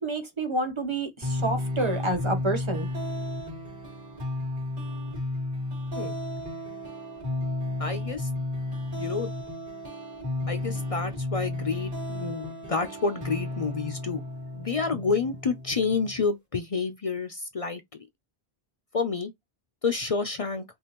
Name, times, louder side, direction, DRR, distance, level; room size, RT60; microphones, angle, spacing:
voice 1, 0.0-2.9, right 2 dB, 30° right, 1.1 m, -29 dB
sound 1, 1.2-16.2, left 1 dB, 55° right, 3.0 m, -33 dB
voice 2, 7.8-8.3 9.0-9.3 10.4-14.2 14.5-18.0 18.9-19.3 19.8-20.6, left 4 dB, 45° left, 0.5 m, -29 dB
5.3 x 2.5 x 2.9 m
omnidirectional pair, 1.0 m